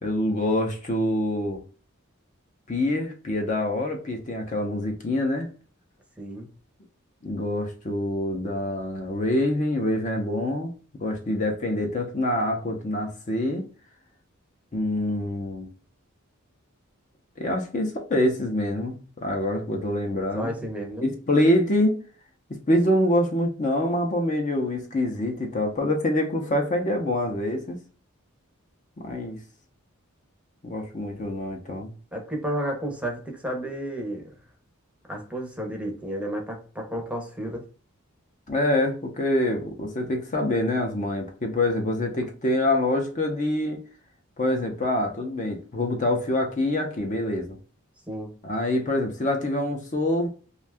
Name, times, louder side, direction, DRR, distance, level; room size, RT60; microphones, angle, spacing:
voice 1, 0.0-1.6 2.7-5.5 7.2-10.7 11.0-13.6 14.7-15.7 17.4-20.5 21.0-22.0 22.5-27.8 29.0-29.4 30.6-31.9 38.5-43.8 44.4-47.6 48.4-50.3, left 1 dB, 35° left, 3 dB, 0.5 m, -25 dB
voice 2, 6.2-6.5 20.3-21.1 32.1-34.2 35.1-37.6 48.1-48.3, right 1 dB, 5° right, 1 dB, 0.7 m, -32 dB
2.6 x 2.3 x 3.3 m, 0.39 s
head